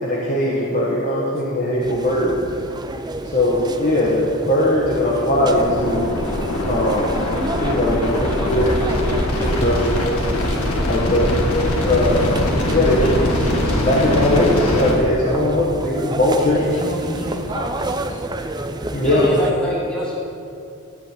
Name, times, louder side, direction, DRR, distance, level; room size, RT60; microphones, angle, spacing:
voice 1, 0.0-2.4 3.2-6.1 6.7-7.2 7.6-8.8 9.4-10.0 10.9-11.3 11.8-12.3 12.6-13.3 13.6-16.7 18.9-19.3, left 1 dB, 35° left, -6 dB, 1.3 m, -19 dB
sound 1, 1.8-19.5, right 2 dB, 20° right, 0.4 m, -31 dB
sound 2, 5.3-14.9, left 1 dB, 85° left, 1.8 m, -22 dB
voice 2, 16.4-18.2, equal, 65° left, -4 dB, 3.0 m, -30 dB
voice 3, 19.0-20.1, equal, 5° left, -5 dB, 1.3 m, -25 dB
13.5 x 4.5 x 8.2 m, 2.6 s
head